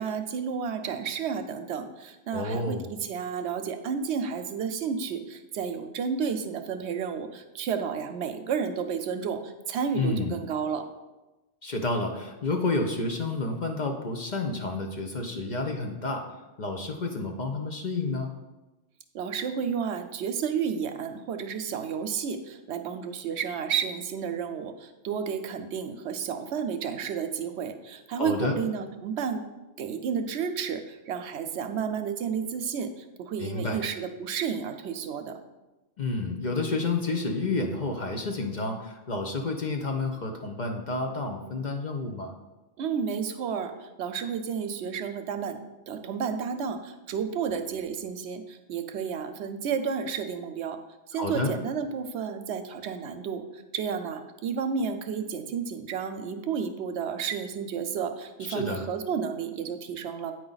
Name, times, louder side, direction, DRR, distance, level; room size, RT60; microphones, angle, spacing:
voice 1, 0.0-10.9 19.1-29.4 29.8-35.4 42.8-45.6 45.9-50.8 51.1-60.3, right 6 dB, 70° right, 8 dB, 0.8 m, -31 dB
voice 2, 2.3-2.9 10.0-10.3 11.6-16.2 16.6-18.3 28.2-28.6 33.4-33.8 36.0-42.3 51.1-51.5 58.5-58.8, left 3 dB, 45° left, 3 dB, 0.8 m, -30 dB
8.9 x 4.7 x 3.9 m, 1.1 s
omnidirectional pair, 1.2 m